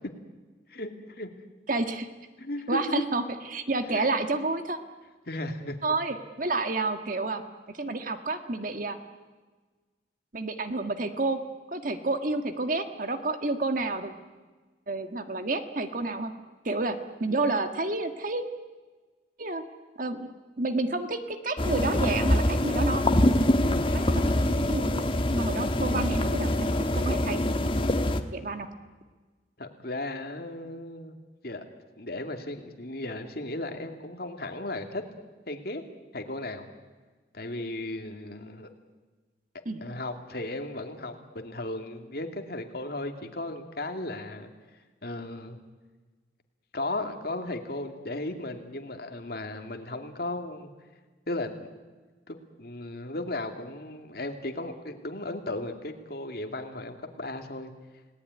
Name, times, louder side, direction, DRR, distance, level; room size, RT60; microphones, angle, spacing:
voice 1, 0.7-1.3 2.4-3.0 3.9-4.1 5.3-5.8 6.5-6.6 29.6-31.2 31.4-31.6 32.0-35.0 35.5-35.8 36.1-36.7 37.3-38.7 39.8-44.5 45.0-45.6 46.7-50.7 51.3-51.7 52.3-57.7, left 2 dB, 55° left, 5 dB, 2.5 m, -35 dB
voice 2, 1.7-2.1 2.7-3.2 3.5-4.8 5.8-7.4 7.7-9.0 10.3-11.4 11.7-14.1 14.9-16.3 16.7-18.4 19.4-19.6 20.0-20.3 20.6-23.0 23.9-27.4 28.3-28.7 39.7-39.8, right 2 dB, 45° right, 7 dB, 1.7 m, -30 dB
sound 1, 21.6-28.2, left 1 dB, 30° left, 1.4 m, -24 dB
30.0 x 18.5 x 9.7 m, 1.4 s
head